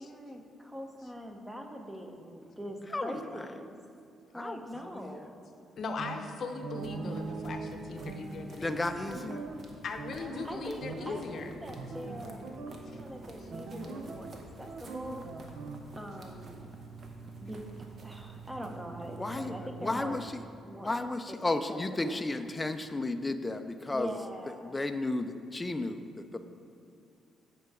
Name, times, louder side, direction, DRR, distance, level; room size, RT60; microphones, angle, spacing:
voice 1, 0.0-3.7 4.3-5.3 10.4-12.4 12.7-14.3 14.6-15.2 16.0-16.6 17.4-17.6 18.0-20.2 20.7-20.9 21.3-21.4 21.7-22.2 23.9-24.8, equal, 10° right, 4 dB, 0.9 m, -43 dB
voice 2, 5.8-9.1 9.8-11.6 12.9-13.0, left 4 dB, 55° left, 5 dB, 0.7 m, -39 dB
sound 1, 6.0-6.3 6.6-9.6 10.0-10.5 10.8-11.3 11.8-12.8 13.5-14.4 14.7-15.8, right 4 dB, 75° right, 0.6 m, -41 dB
sound 2, 6.7-20.4, right 3 dB, 50° right, 1.0 m, -48 dB
voice 3, 8.6-9.4 19.2-19.5 19.8-20.2 20.8-24.1 24.7-26.4, left 2 dB, 20° left, 9 dB, 0.4 m, -33 dB
8.9 x 4.6 x 4.8 m, 2.5 s
cardioid pair, 90°, 0 cm